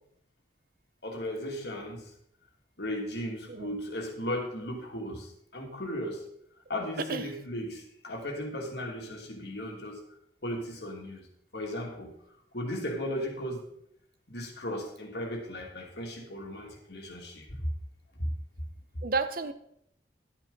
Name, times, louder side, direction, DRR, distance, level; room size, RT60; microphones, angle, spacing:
voice 1, 1.0-2.1 2.8-6.2 6.7-10.0 10.4-11.3 11.5-12.1 12.5-13.7 14.3-17.6 18.2-18.3, left 1 dB, 65° left, 1 dB, 2.4 m, -36 dB
voice 2, 19.0-19.5, right 4 dB, 55° right, 12 dB, 0.7 m, -31 dB
11.5 x 9.0 x 3.9 m, 0.73 s
head